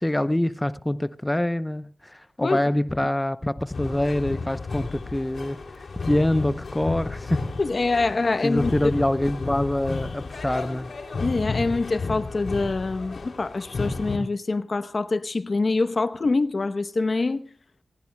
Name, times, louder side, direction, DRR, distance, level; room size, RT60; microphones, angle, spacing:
voice 1, 0.0-7.5 8.4-11.0, left 1 dB, 15° left, 0.7 m, -25 dB
sound 1, 3.7-14.2, left 3 dB, 75° left, 3.0 m, -32 dB
voice 2, 7.6-8.9 11.2-17.5, left 3 dB, 55° left, 0.9 m, -25 dB
27.0 x 17.0 x 2.2 m
cardioid pair, 40°, 0 cm